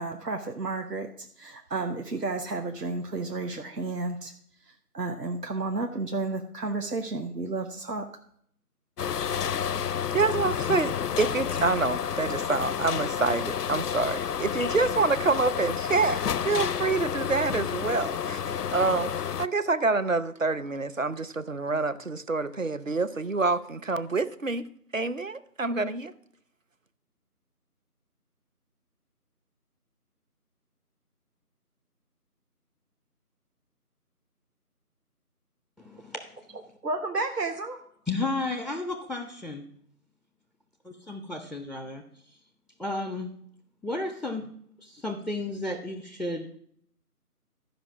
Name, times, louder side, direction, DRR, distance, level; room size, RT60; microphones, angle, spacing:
voice 1, 0.0-4.3 4.9-8.1 36.8-37.8, right 3 dB, 90° right, 4 dB, 1.1 m, -32 dB
sound 1, 9.0-19.5, left 8 dB, 80° left, 0.5 m, -30 dB
voice 2, 10.1-10.9 11.2-18.4 18.7-19.1 19.4-24.6 24.9-26.1, right 3 dB, 60° right, 14 dB, 0.6 m, -27 dB
voice 3, 35.8-36.2 38.1-39.7 40.8-42.0 42.8-43.3 43.8-44.5 44.8-46.4, left 2 dB, ahead, 5 dB, 0.5 m, -33 dB
13.0 x 5.1 x 5.9 m, 0.64 s
figure-of-eight pair, 175°, 47 cm